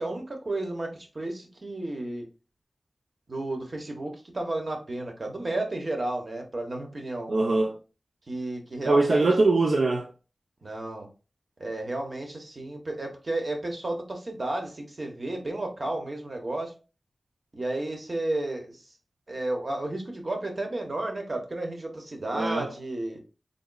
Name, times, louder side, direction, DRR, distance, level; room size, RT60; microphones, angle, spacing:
voice 1, 0.0-2.3 3.3-7.3 8.3-9.5 10.6-11.1 11.6-16.7 17.5-18.8 19.3-23.2, right 2 dB, 50° right, 1.0 m, -32 dB
voice 2, 7.3-7.8 8.9-10.1 22.3-22.7, right 2 dB, 75° right, 0.5 m, -22 dB
3.9 x 3.9 x 2.2 m
wide cardioid pair, 90°, 0 cm